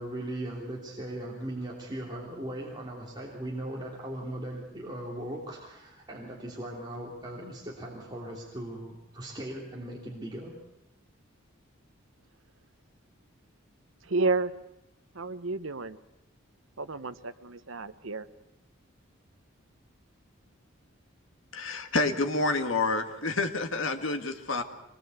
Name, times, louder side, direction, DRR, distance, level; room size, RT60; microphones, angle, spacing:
voice 1, 0.0-10.5, right 1 dB, 20° right, -3 dB, 3.2 m, -38 dB
voice 2, 14.0-14.5 15.1-16.0 16.8-18.3, right 3 dB, 75° right, 12 dB, 1.1 m, -31 dB
voice 3, 21.5-24.6, left 3 dB, 70° left, 6 dB, 2.1 m, -28 dB
24.0 x 20.5 x 8.2 m, 0.90 s
head